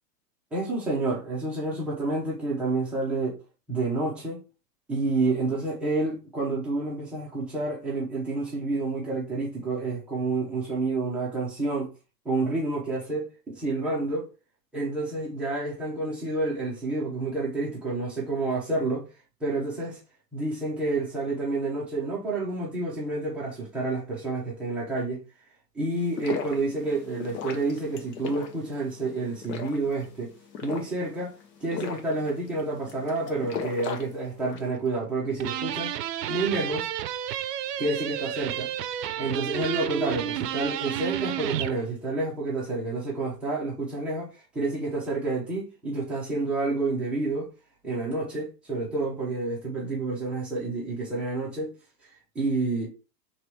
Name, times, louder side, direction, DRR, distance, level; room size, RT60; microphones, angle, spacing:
voice 1, 0.5-3.4 3.7-4.4 4.9-11.9 12.2-14.3 14.7-19.1 19.4-20.0 20.3-25.2 25.7-30.3 30.6-31.3 31.6-35.9 36.3-36.9 37.8-38.7 39.2-47.5 47.8-51.7 52.3-52.9, right 2 dB, ahead, 0.4 m, -29 dB
sound 1, 25.9-34.8, left 6 dB, 75° left, 1.1 m, -38 dB
sound 2, 35.4-41.8, right 11 dB, 70° right, 0.6 m, -31 dB
3.0 x 3.0 x 4.6 m
hypercardioid pair, 130°, 50 cm